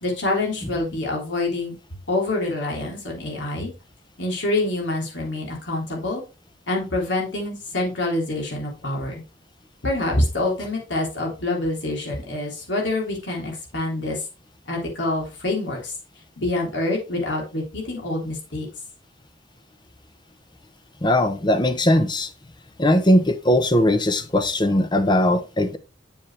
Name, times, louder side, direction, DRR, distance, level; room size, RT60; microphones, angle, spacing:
voice 1, 0.0-1.8 2.1-3.7 4.2-6.2 6.7-9.2 9.8-14.3 14.7-15.9 16.4-18.7, left 2 dB, 75° left, 3.3 m, -26 dB
voice 2, 21.0-22.3 22.8-25.8, left 1 dB, 25° left, 0.8 m, -19 dB
7.5 x 7.3 x 3.3 m
head